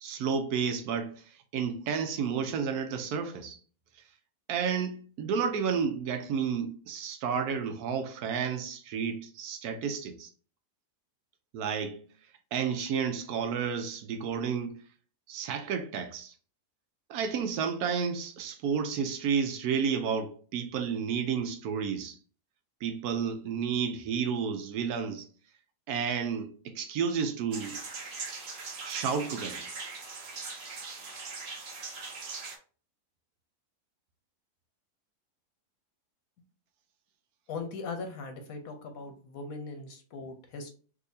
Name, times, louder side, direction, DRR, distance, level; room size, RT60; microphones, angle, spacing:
voice 1, 0.0-3.6 4.5-10.3 11.5-12.0 12.5-14.8 15.3-16.3 17.1-22.2 22.8-25.3 25.9-27.8 28.8-29.6, right 6 dB, 75° right, 1.0 m, -31 dB
sound 1, 27.5-32.6, right 4 dB, 50° right, 0.8 m, -40 dB
voice 2, 37.5-40.7, left 4 dB, 70° left, 1.0 m, -39 dB
3.6 x 2.7 x 2.6 m
omnidirectional pair, 1.7 m